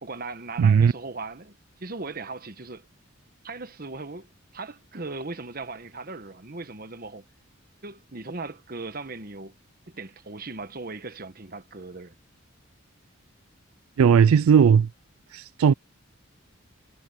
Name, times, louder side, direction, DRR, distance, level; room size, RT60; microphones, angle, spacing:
voice 1, 0.0-2.9 3.4-4.3 4.5-7.2 7.8-9.6 9.9-12.1, right 3 dB, 45° right, 1.2 m, -38 dB
voice 2, 0.6-0.9 14.0-14.9 15.3-15.7, right 7 dB, 90° right, 0.3 m, -17 dB
head